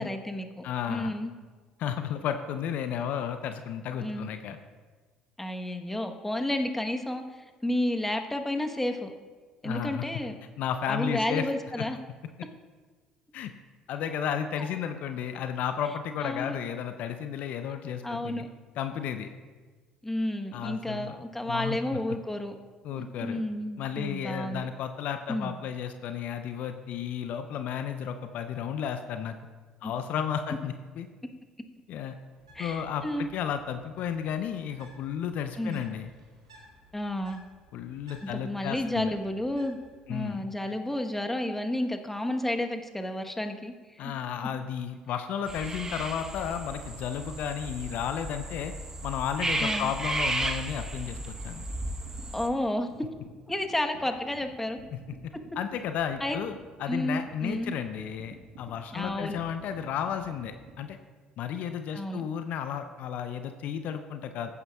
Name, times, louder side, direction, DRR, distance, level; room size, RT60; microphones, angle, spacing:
voice 1, 0.0-1.3 4.0-4.3 5.4-9.1 9.6-10.4 10.9-12.0 14.6-14.7 16.2-16.6 18.0-18.5 20.0-22.5 22.9-24.7 25.3-25.5 29.8-29.9 32.5-33.4 35.6-35.8 36.9-37.4 38.2-39.8 40.1-43.7 44.0-44.1 49.6-49.9 52.3-52.9 53.5-54.8 56.2-56.4 56.9-57.7 58.9-59.4 61.9-62.3, left 1 dB, 10° left, 5 dB, 1.1 m, -31 dB
voice 2, 0.6-1.1 1.8-4.6 9.6-10.1 10.6-11.5 11.8-11.9 13.3-13.5 13.9-18.5 18.8-19.3 20.5-21.1 21.5-22.2 22.8-23.4 23.8-29.4 29.8-31.1 31.9-32.2 32.6-36.1 37.7-39.1 40.1-40.5 44.0-48.7 49.0-51.7 54.9-55.2 55.6-56.5 56.8-61.0 61.4-64.5, left 8 dB, 60° left, 8 dB, 0.6 m, -33 dB
Bird, 32.3-40.1, right 1 dB, 90° right, 1.9 m, -57 dB
sound 1, 45.5-52.5, right 2 dB, 20° right, 1.0 m, -34 dB
sound 2, 51.3-60.8, right 3 dB, 65° right, 1.3 m, -51 dB
15.0 x 9.3 x 2.3 m, 1.4 s
hypercardioid pair, 55°, 3 cm